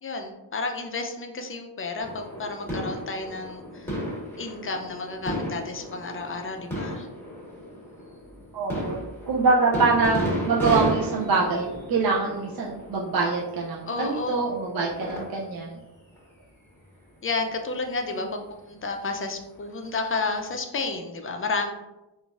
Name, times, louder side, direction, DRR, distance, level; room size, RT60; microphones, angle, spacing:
voice 1, 0.0-3.9 4.4-7.1 13.9-14.5 17.2-18.4 18.7-21.7, left 3 dB, 30° left, 4 dB, 0.4 m, -31 dB
sound 1, 2.0-15.6 16.1-16.2 17.3-17.6 18.7-18.8, equal, 5° left, 1.5 m, -34 dB
voice 2, 8.5-9.0 9.3-15.8, right 4 dB, 55° right, -2 dB, 0.5 m, -24 dB
3.8 x 2.5 x 2.4 m, 1.0 s
cardioid pair, 90°, 43 cm